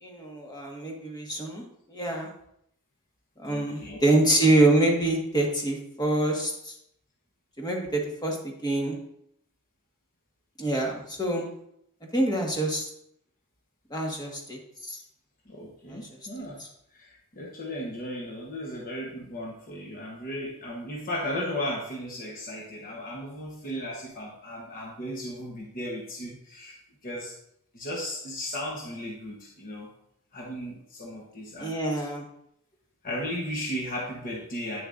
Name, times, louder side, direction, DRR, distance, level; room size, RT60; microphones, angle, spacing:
voice 1, 0.0-1.6 1.9-2.3 3.4-6.7 7.6-9.0 10.6-11.5 12.1-12.9 13.9-15.0 15.9-16.0 31.6-32.2, right 2 dB, 20° left, 0 dB, 1.5 m, -26 dB
voice 2, 3.4-4.0 15.4-16.6 16.9-26.8 27.0-27.4 27.7-29.9 30.3-32.1 33.0-34.8, equal, 40° left, -2 dB, 1.1 m, -35 dB
9.0 x 6.6 x 2.6 m, 0.72 s
head